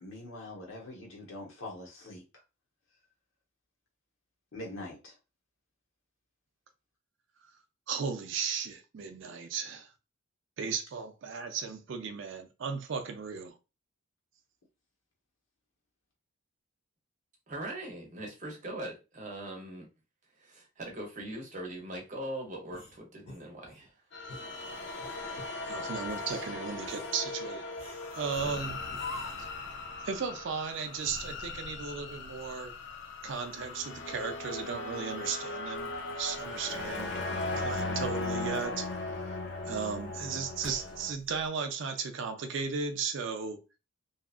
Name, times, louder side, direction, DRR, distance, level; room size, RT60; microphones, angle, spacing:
voice 1, 0.0-2.4 4.5-5.2, left 1 dB, 70° left, 1.1 m, -43 dB
voice 2, 7.9-9.9 10.6-13.5 25.2-25.4 25.7-27.7 28.1-28.8 30.0-32.7 33.2-38.9 39.7-43.6, right 6 dB, 55° right, 0.4 m, -36 dB
voice 3, 17.5-19.9 20.4-23.9 28.4-28.5, right 1 dB, 35° right, 0.7 m, -41 dB
sound 1, 22.7-23.9 24.3-24.5 25.0-25.5 26.0-26.5 26.9-27.2 27.8-28.3 28.9-29.6, left 2 dB, 25° left, 0.8 m, -46 dB
sound 2, 24.1-41.1, left 3 dB, 50° left, 0.5 m, -38 dB
Boiling, 35.7-41.5, equal, 5° right, 0.5 m, -54 dB
2.7 x 2.3 x 2.4 m
head